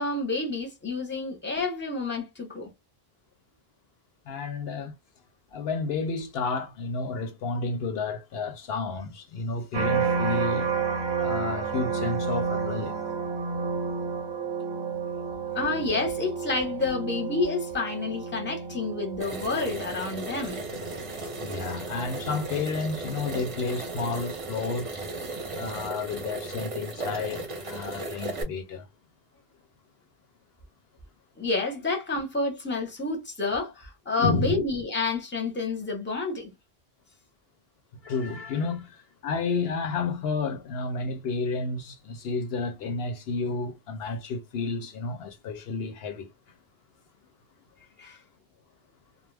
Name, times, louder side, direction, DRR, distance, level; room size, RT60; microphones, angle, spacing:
voice 1, 0.0-2.7 15.5-20.6 31.4-36.5 48.0-48.2, left 3 dB, 10° left, 0.8 m, -29 dB
voice 2, 4.3-4.9 5.5-10.7 11.2-13.0 21.1-25.0 25.5-28.9 34.2-34.6 38.0-46.3, left 4 dB, 75° left, 0.8 m, -31 dB
sound 1, 9.7-24.9 25.4-25.9, right 5 dB, 80° right, 0.9 m, -32 dB
sound 2, 19.2-28.4, right 2 dB, 35° right, 0.7 m, -36 dB
2.3 x 2.0 x 3.2 m
omnidirectional pair, 1.1 m